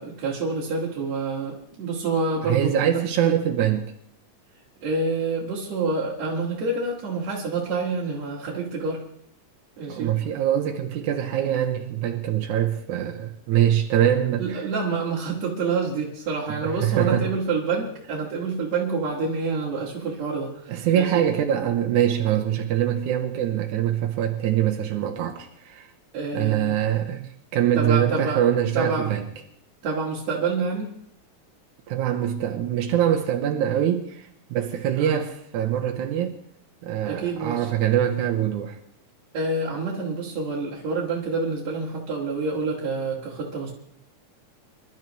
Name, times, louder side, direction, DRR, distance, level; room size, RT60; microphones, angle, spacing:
voice 1, 0.0-3.0 4.8-9.1 9.8-10.1 14.4-21.2 26.1-26.8 27.7-28.4 28.7-29.1 29.8-30.9 34.9-35.2 37.0-37.7 39.3-43.7, right 3 dB, 65° right, 3.2 m, -27 dB
voice 2, 2.4-3.9 9.9-14.6 16.6-17.3 20.7-25.9 26.3-29.3 31.9-36.4 36.8-38.8, right 10 dB, 85° right, 2.4 m, -24 dB
26.5 x 12.0 x 3.1 m
omnidirectional pair, 3.4 m